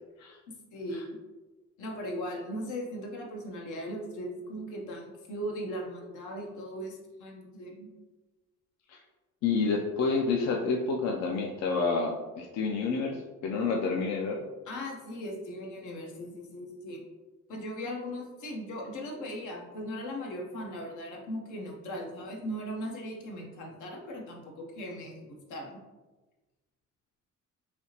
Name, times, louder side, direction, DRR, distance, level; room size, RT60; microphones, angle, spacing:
voice 1, 0.7-1.2 1.8-7.9 14.7-17.0 17.5-25.8, equal, 80° left, 0 dB, 0.8 m, -38 dB
voice 2, 9.4-14.4, left 4 dB, 60° left, 0 dB, 0.4 m, -29 dB
3.3 x 2.7 x 2.8 m, 1.2 s
cardioid pair, 90°, 30 cm